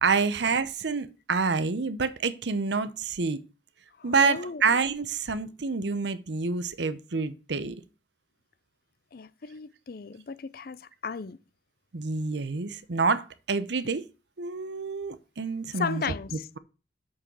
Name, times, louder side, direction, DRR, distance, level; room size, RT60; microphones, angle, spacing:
voice 1, 0.0-3.4 4.0-7.8 11.9-14.0 14.4-16.0, right 4 dB, 70° right, 0.8 m, -27 dB
voice 2, 4.0-4.6 9.1-11.4 15.7-16.5, left 5 dB, 50° left, 0.5 m, -35 dB
6.4 x 6.1 x 6.8 m
head